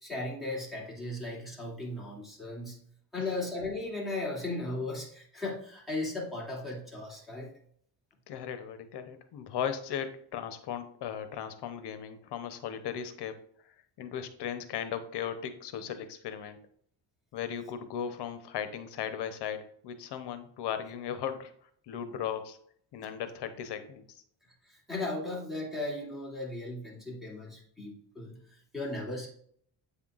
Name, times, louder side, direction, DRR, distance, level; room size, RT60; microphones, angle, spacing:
voice 1, 0.0-2.8 3.1-7.5 24.7-28.4 28.7-29.3, left 2 dB, ahead, -6 dB, 2.3 m, -36 dB
voice 2, 8.3-13.4 13.7-16.6 17.3-21.5 21.9-22.6 22.9-24.2, left 8 dB, 70° left, 9 dB, 0.8 m, -37 dB
8.3 x 5.6 x 2.4 m, 0.63 s
cardioid pair, 140°, 42 cm